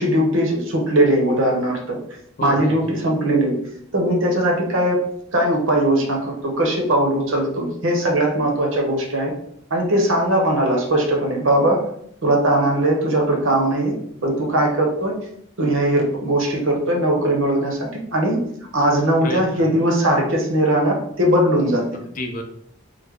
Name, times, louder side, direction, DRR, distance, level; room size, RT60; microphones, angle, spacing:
voice 1, 0.0-2.0 2.4-3.6 3.9-5.0 5.3-9.3 9.7-11.9 12.2-13.9 14.2-15.1 15.6-18.5 18.7-22.0, right 1 dB, 75° right, 1 dB, 0.8 m, -19 dB
voice 2, 2.4-2.9 19.2-19.7 21.9-22.4, left 1 dB, 40° left, 4 dB, 0.4 m, -31 dB
3.2 x 2.1 x 3.5 m, 0.70 s
head